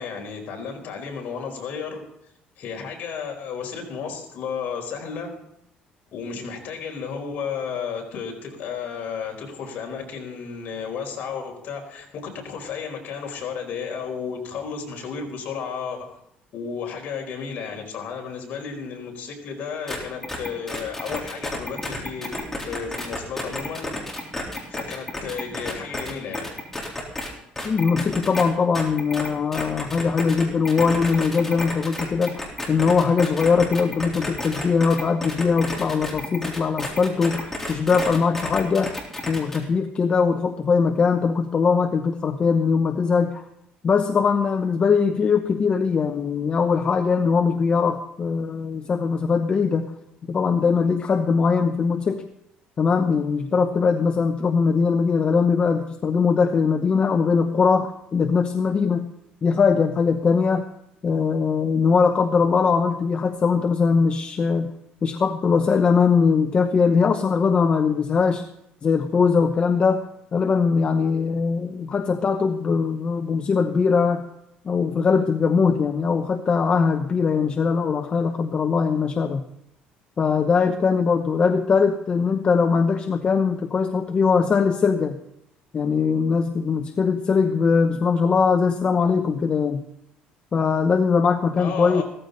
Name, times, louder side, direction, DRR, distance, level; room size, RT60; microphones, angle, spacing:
voice 1, 0.0-2.0 2.6-5.3 6.1-16.2 16.5-24.0 24.7-26.6 91.6-92.0, left 6 dB, 60° left, 2 dB, 4.5 m, -33 dB
sound 1, 19.9-20.0 20.2-27.3 27.6-28.4 28.7-39.6, left 1 dB, 10° left, 3.7 m, -31 dB
voice 2, 27.6-39.0 39.3-43.4 43.8-49.9 50.3-52.2 52.8-59.1 59.4-60.7 61.0-64.7 65.0-68.5 68.8-74.3 74.6-79.4 80.2-85.2 85.7-89.8 90.5-92.0, left 5 dB, 35° left, 6 dB, 0.9 m, -21 dB
16.0 x 14.5 x 4.0 m, 0.80 s
cardioid pair, 125°, 3 cm